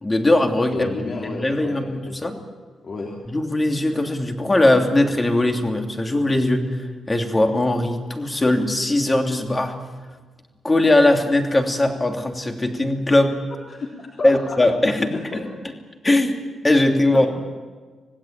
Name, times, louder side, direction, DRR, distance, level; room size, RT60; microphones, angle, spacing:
voice 1, 0.0-0.9 1.3-2.4 3.3-6.7 7.1-9.8 10.6-13.4 14.2-15.4 16.0-16.4 16.6-17.3, left 1 dB, 20° left, 4 dB, 2.9 m, -20 dB
voice 2, 0.7-2.2 2.8-3.1 13.7-14.6 14.8-15.4 17.1-17.3, left 3 dB, 45° left, -1 dB, 3.5 m, -31 dB
26.5 x 18.0 x 9.0 m, 1.4 s
cardioid pair, 115°, 0 cm